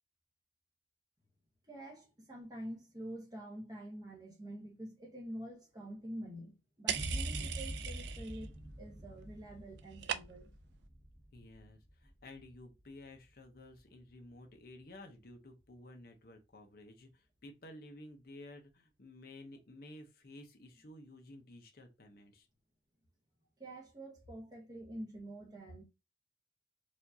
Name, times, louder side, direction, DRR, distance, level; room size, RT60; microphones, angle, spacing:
voice 1, 1.7-10.5 23.6-25.8, right 1 dB, 20° right, 1.0 m, -47 dB
sound 1, 6.9-8.5 8.8-9.3 9.6-10.6, right 9 dB, 65° right, 0.4 m, -40 dB
sound 2, 7.0-14.3, equal, 15° left, 0.7 m, -45 dB
voice 2, 11.3-22.5, left 1 dB, 50° left, 0.7 m, -53 dB
4.5 x 2.5 x 2.6 m
head